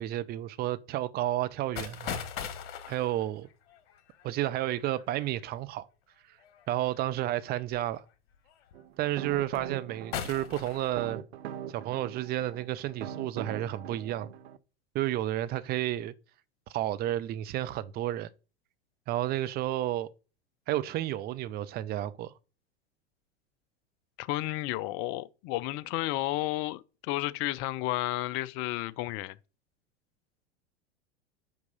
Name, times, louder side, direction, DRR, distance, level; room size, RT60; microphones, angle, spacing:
voice 1, 0.0-2.3 2.9-3.5 4.2-5.9 6.7-8.0 9.0-11.2 11.7-14.3 14.9-16.1 16.7-18.3 19.1-20.1 20.7-22.3, right 14 dB, 30° right, 0.5 m, -31 dB
sound 1, 1.8-5.2 6.4-6.9 7.7-7.8 8.3-8.7 9.3-9.8 10.1-11.1, left 8 dB, 60° left, 1.4 m, -39 dB
sound 2, 8.7-14.6, right 10 dB, 70° right, 0.6 m, -42 dB
voice 2, 24.2-29.4, left 17 dB, 35° left, 0.5 m, -32 dB
5.3 x 4.7 x 5.3 m
figure-of-eight pair, 90°, 34 cm